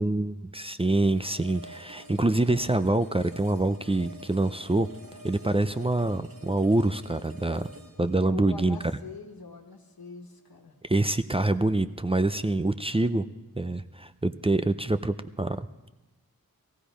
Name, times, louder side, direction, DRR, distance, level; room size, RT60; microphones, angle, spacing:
voice 1, 0.0-4.9 5.2-7.7 8.0-8.8 10.8-13.2 13.6-15.7, right 2 dB, 15° right, 11 dB, 0.4 m, -26 dB
sound 1, 1.0-10.0, equal, 75° right, 2.4 m, -49 dB
voice 2, 8.2-10.7, left 5 dB, 85° left, 4 dB, 1.5 m, -43 dB
18.0 x 15.0 x 5.1 m, 1.1 s
wide cardioid pair, 75°, 35 cm